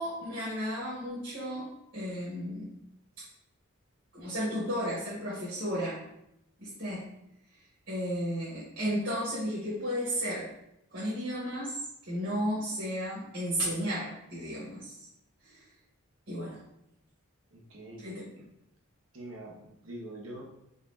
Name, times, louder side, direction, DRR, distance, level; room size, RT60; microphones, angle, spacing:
voice 1, 0.0-2.7 4.1-6.0 6.6-7.1 7.9-10.5 10.9-11.8 12.0-14.9 15.4-15.6 16.3-16.6 18.0-18.2, equal, 55° right, -9 dB, 1.6 m, -33 dB
voice 2, 17.5-18.1 19.1-20.4, right 1 dB, 70° right, -1 dB, 1.1 m, -44 dB
4.2 x 4.1 x 2.7 m, 0.81 s
head